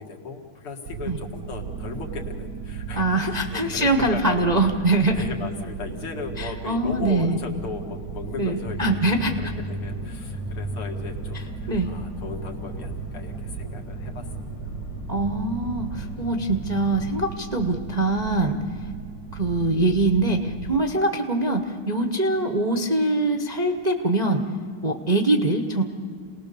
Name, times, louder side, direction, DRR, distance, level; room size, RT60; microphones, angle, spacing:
voice 1, 0.0-4.7 5.1-14.3 14.6-14.7, left 4 dB, 90° left, 2 dB, 2.8 m, -37 dB
sound 1, 0.9-20.8, right 7 dB, 60° right, 1.1 m, -36 dB
voice 2, 2.9-5.2 6.4-7.4 8.4-9.3 11.7-11.9 15.1-18.6 19.3-24.4 24.8-25.8, right 2 dB, 45° right, 3 dB, 0.5 m, -23 dB
sound 2, 8.6-17.2, left 2 dB, 55° left, 2.3 m, -36 dB
28.0 x 19.0 x 6.8 m, 2.2 s
omnidirectional pair, 2.3 m